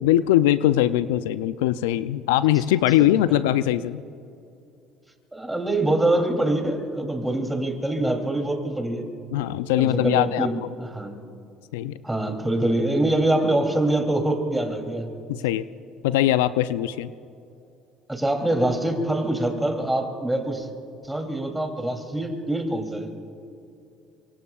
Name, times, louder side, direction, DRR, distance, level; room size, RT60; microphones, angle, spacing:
voice 1, 0.0-4.0 9.3-10.5 11.7-11.9 15.3-15.7 16.0-17.1, left 13 dB, 85° left, 15 dB, 0.4 m, -21 dB
voice 2, 3.0-3.4 5.3-9.1 9.8-11.2 12.0-15.1 18.1-20.7 21.0-23.1, right 1 dB, 10° right, 4 dB, 3.0 m, -24 dB
24.5 x 24.5 x 2.4 m, 2.6 s
hypercardioid pair, 70°, 0 cm